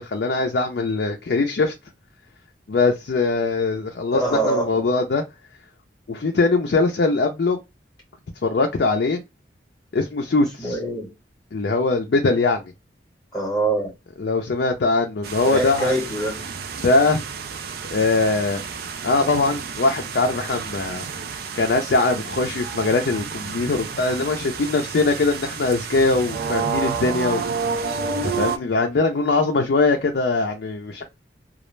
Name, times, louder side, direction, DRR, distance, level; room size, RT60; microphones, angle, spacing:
voice 1, 0.0-1.7 2.7-5.2 6.1-7.6 8.4-9.2 9.9-10.8 11.5-12.6 14.2-15.9 16.8-17.2 17.9-18.6 19.0-21.1 21.5-27.4 28.2-31.0, left 3 dB, 60° left, 0.4 m, -21 dB
voice 2, 4.1-4.8 10.6-11.1 13.3-13.9 15.5-16.4, right 2 dB, 20° left, 0.9 m, -24 dB
sound 1, 15.2-28.6, right 5 dB, 55° right, 0.4 m, -30 dB
2.3 x 2.0 x 3.0 m
head